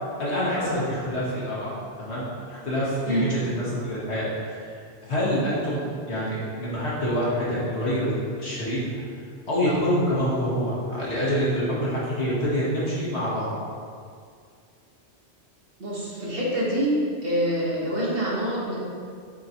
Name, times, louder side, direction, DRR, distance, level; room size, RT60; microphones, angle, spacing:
voice 1, 0.2-1.7 2.0-4.8 5.1-8.8 9.5-13.5, equal, 75° left, -8 dB, 2.1 m, -26 dB
voice 2, 15.8-16.9 17.2-18.8, equal, 55° right, -7 dB, 1.8 m, -26 dB
7.3 x 4.2 x 4.4 m, 2.2 s
omnidirectional pair, 1.1 m